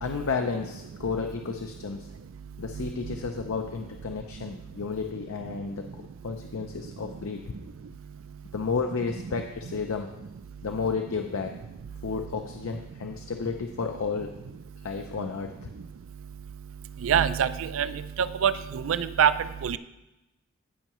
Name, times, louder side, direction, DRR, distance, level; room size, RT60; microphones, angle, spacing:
voice 1, 0.0-2.1 2.6-5.8 6.2-7.5 8.5-10.1 10.6-11.5 12.0-14.3 14.8-15.7, left 5 dB, 80° left, 4 dB, 0.5 m, -32 dB
voice 2, 17.0-17.9 18.4-19.3 19.6-19.8, right 8 dB, 70° right, 14 dB, 0.4 m, -24 dB
15.5 x 5.6 x 3.0 m, 0.97 s
head